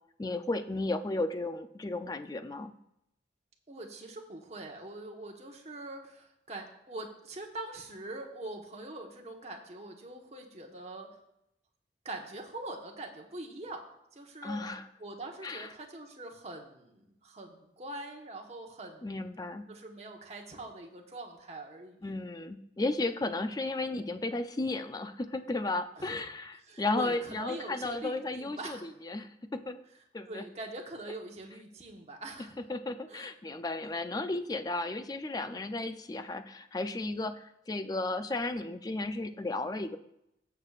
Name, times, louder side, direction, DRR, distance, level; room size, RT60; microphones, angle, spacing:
voice 1, 0.2-2.7 14.4-14.8 15.4-15.7 19.0-19.7 22.0-29.8 30.1-30.4 32.7-40.0, left 2 dB, 20° left, 10 dB, 0.4 m, -34 dB
voice 2, 3.7-11.1 12.0-13.8 14.1-14.6 15.0-19.2 19.7-22.1 26.0-26.2 26.7-28.8 30.3-32.6 33.1-33.3, right 2 dB, 35° right, 1 dB, 1.2 m, -43 dB
17.0 x 6.8 x 2.4 m, 0.82 s
head